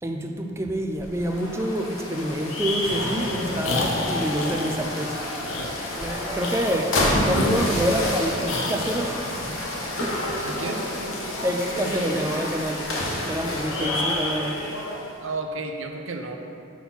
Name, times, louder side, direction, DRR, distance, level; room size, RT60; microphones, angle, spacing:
voice 1, 0.0-5.2 5.6-9.7 10.0-10.5 11.4-12.9 13.2-14.7, right 1 dB, 15° right, 3 dB, 0.4 m, -27 dB
sound 1, 1.0-15.1, left 1 dB, 90° left, 1.1 m, -29 dB
sound 2, 3.6-4.8 5.4-5.7 6.4-6.9 7.3-8.1 8.5-9.0, left 2 dB, 65° left, 0.6 m, -29 dB
voice 2, 10.4-10.8 13.8-14.2 15.2-16.4, right 3 dB, 75° right, 3 dB, 0.6 m, -32 dB
5.8 x 4.2 x 5.5 m, 2.6 s
head